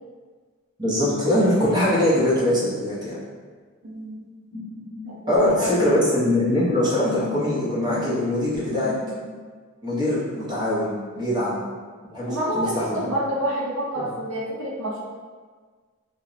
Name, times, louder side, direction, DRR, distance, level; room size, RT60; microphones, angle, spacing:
voice 1, 0.8-3.2 5.3-8.9 9.8-11.6 12.1-13.1 13.9-14.0, left 1 dB, 20° right, -9 dB, 0.6 m, -22 dB
voice 2, 3.8-4.3 5.0-5.9 11.3-11.5 12.3-15.0, right 1 dB, 70° right, -4 dB, 0.5 m, -28 dB
sound 1, 4.5-9.3, left 4 dB, 60° left, 0.7 m, -36 dB
2.8 x 2.1 x 2.4 m, 1.5 s
head